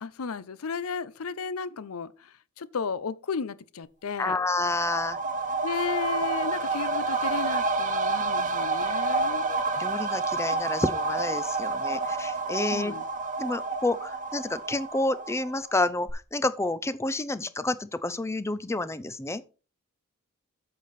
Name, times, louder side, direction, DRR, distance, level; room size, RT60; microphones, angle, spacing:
voice 1, 0.0-4.4 5.6-9.4 12.7-13.0, left 5 dB, 75° left, 0.6 m, -34 dB
voice 2, 4.2-5.2 9.3-13.0 13.4-19.4, left 2 dB, 15° left, 0.5 m, -29 dB
sound 1, 4.3-15.8 16.1-16.2, right 3 dB, 35° right, 1.0 m, -29 dB
8.2 x 6.7 x 4.2 m
head